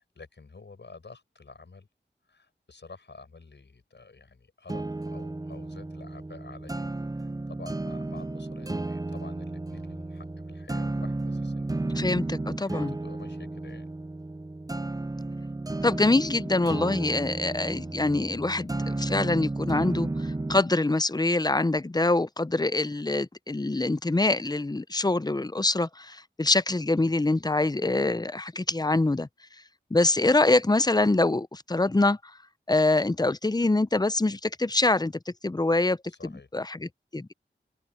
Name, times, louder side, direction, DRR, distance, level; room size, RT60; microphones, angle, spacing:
voice 1, 0.0-1.9 2.2-11.7 12.6-13.9 36.1-36.5, left 4 dB, 70° left, 5.6 m, -49 dB
sound 1, 4.7-20.7, right 2 dB, 20° right, 0.6 m, -33 dB
voice 2, 11.9-12.9 15.8-29.3 29.9-32.3 32.7-36.0 36.2-37.3, left 2 dB, 20° left, 0.6 m, -25 dB
open air
wide cardioid pair, 50°, 19 cm